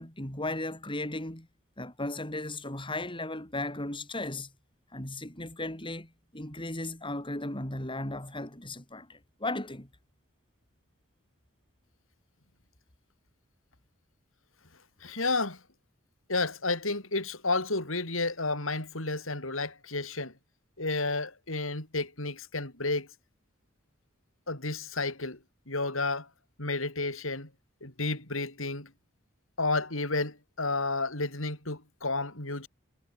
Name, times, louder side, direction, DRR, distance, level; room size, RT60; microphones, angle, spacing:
voice 1, 0.0-1.5 1.8-4.5 4.9-9.9, left 2 dB, 25° left, 7.2 m, -36 dB
voice 2, 15.0-15.6 16.3-20.3 20.8-23.1 24.5-25.4 25.7-26.3 26.6-27.5 27.8-28.9 29.6-32.7, left 3 dB, 75° left, 7.4 m, -31 dB
head